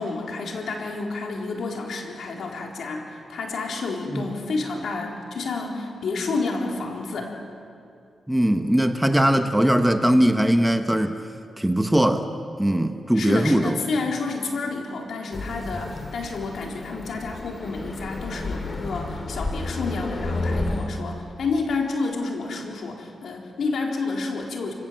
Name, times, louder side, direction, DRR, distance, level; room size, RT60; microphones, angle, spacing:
voice 1, 0.0-7.3 13.1-24.7, left 3 dB, 75° left, 0 dB, 3.9 m, -29 dB
voice 2, 8.3-11.2 11.6-12.3 12.6-13.8, right 1 dB, 5° right, 7 dB, 1.3 m, -20 dB
sound 1, 15.3-20.9, left 2 dB, 35° left, 3.0 m, -31 dB
29.5 x 17.5 x 7.6 m, 2.5 s
cardioid pair, 80°, 0 cm